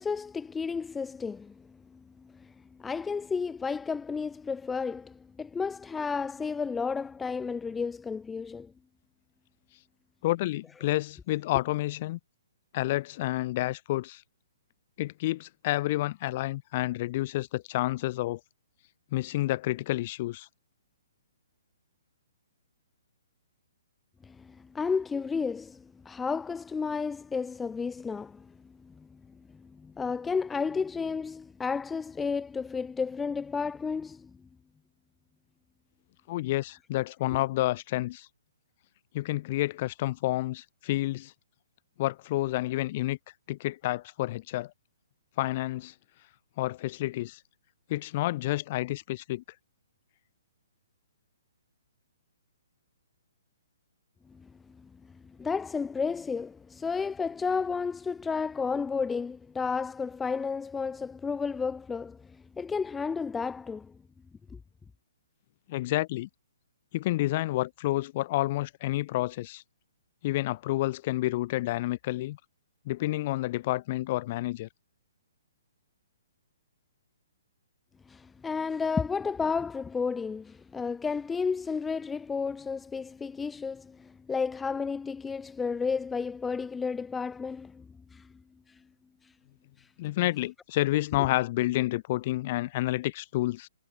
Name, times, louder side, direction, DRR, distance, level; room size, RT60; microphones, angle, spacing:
voice 1, 0.0-2.5 2.8-8.7 24.2-28.5 28.8-29.1 29.5-34.3 54.3-54.5 54.8-54.9 55.4-62.3 62.6-63.9 64.5-64.6 78.1-88.3 88.7-88.8 89.8-89.9, left 5 dB, 10° left, 1.8 m, -32 dB
voice 2, 10.2-12.2 12.7-14.2 15.0-18.4 19.1-20.5 36.3-38.3 39.1-41.3 42.0-43.2 43.5-44.7 45.4-45.9 46.6-47.4 47.9-49.4 65.7-66.3 66.9-69.6 70.2-72.4 72.9-74.7 90.0-93.7, left 17 dB, 40° left, 3.8 m, -29 dB
figure-of-eight pair, 125°, 0 cm